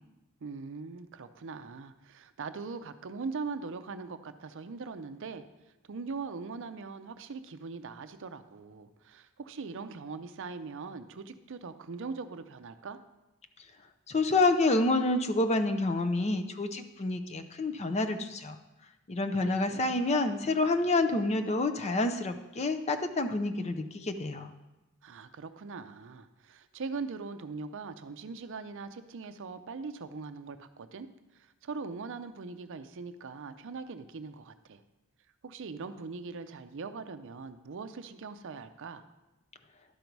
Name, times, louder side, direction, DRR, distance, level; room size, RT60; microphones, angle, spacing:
voice 1, 0.4-5.4 5.9-13.0 19.3-19.9 25.0-31.1 31.3-34.8 35.4-39.1, right 4 dB, 60° right, 10 dB, 0.5 m, -41 dB
voice 2, 14.1-18.6 19.1-24.5, left 2 dB, 30° left, 8 dB, 0.5 m, -28 dB
11.5 x 5.3 x 4.6 m, 1.0 s
head